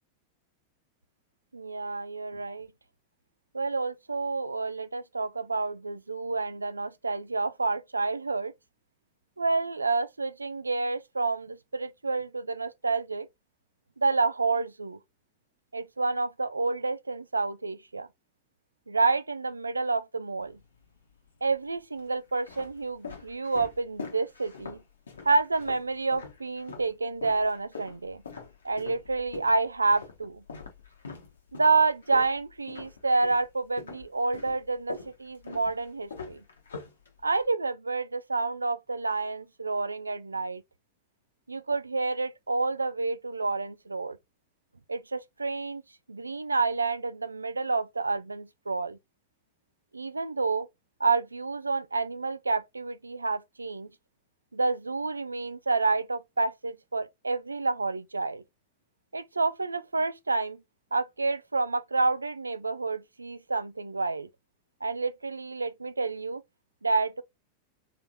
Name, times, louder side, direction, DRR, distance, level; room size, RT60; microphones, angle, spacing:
voice 1, 1.5-2.7 3.5-8.5 9.4-13.3 14.0-15.0 15.7-18.1 18.9-20.6 21.4-24.8 25.2-28.2 28.6-30.4 31.5-36.4 37.2-40.6 41.5-44.2 44.9-45.8 46.1-49.0 49.9-50.7 51.0-53.9 54.5-58.4 59.1-60.6 60.9-64.3 64.8-66.4 66.8-67.2, right 3 dB, 80° right, 0.3 m, -29 dB
sound 1, 20.4-21.1 21.8-26.9 27.2-33.5 33.8-37.5, left 5 dB, 70° left, 1.0 m, -44 dB
3.7 x 3.3 x 2.6 m
figure-of-eight pair, 90°, 0 cm